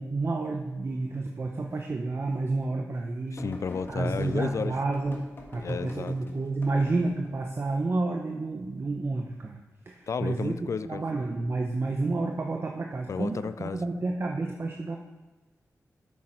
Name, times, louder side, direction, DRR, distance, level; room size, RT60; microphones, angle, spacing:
voice 1, 0.0-3.4 3.9-9.6 9.9-10.6 10.8-15.0, right 3 dB, 40° right, 2 dB, 0.7 m, -30 dB
voice 2, 3.3-4.7 5.6-6.2 10.1-11.0 13.1-13.8, left 6 dB, 60° left, 14 dB, 0.3 m, -32 dB
sound 1, 3.4-7.3 10.8-11.2 12.3-12.4, left 2 dB, 40° left, 1.5 m, -43 dB
8.4 x 6.4 x 4.4 m, 1.2 s
wide cardioid pair, 85°, 6 cm